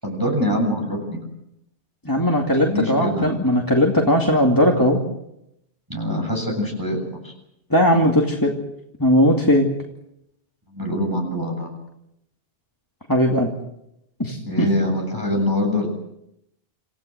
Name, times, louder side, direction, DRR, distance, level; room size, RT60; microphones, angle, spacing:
voice 1, 0.0-1.2 2.7-3.4 5.9-7.3 10.7-11.7 14.4-15.9, left 1 dB, 15° right, 2 dB, 7.8 m, -24 dB
voice 2, 2.0-5.0 7.7-8.5 9.0-9.7 13.1-13.5 14.2-14.7, equal, 15° left, 0 dB, 2.4 m, -18 dB
28.5 x 16.0 x 7.9 m, 0.81 s
omnidirectional pair, 1.2 m